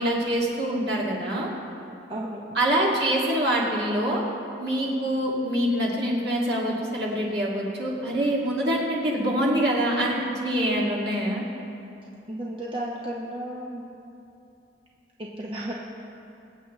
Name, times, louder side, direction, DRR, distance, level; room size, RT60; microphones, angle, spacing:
voice 1, 0.0-1.5 2.5-4.2 4.6-11.4, right 1 dB, 65° right, -4 dB, 2.4 m, -25 dB
voice 2, 2.1-2.4 12.3-13.8 15.2-15.7, right 1 dB, 30° right, -4 dB, 0.9 m, -33 dB
23.0 x 7.8 x 3.2 m, 2.7 s
head